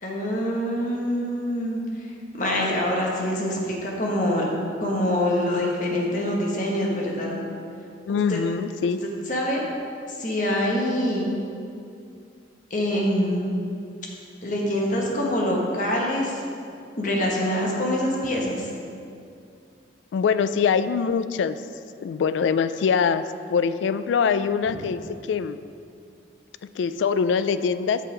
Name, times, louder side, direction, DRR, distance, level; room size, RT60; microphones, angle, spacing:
voice 1, 0.0-2.1 2.3-4.4 4.8-7.4 8.3-8.4 9.3-9.6 10.1-11.3 12.7-13.5 14.4-16.4 17.0-18.7 24.7-24.8, left 1 dB, 45° left, -2 dB, 1.4 m, -25 dB
voice 2, 8.1-9.0 20.1-21.6 22.0-23.2 23.5-25.0 25.3-25.6 26.8-28.0, left 6 dB, 85° left, 13 dB, 0.3 m, -23 dB
8.2 x 5.7 x 5.0 m, 2.4 s
head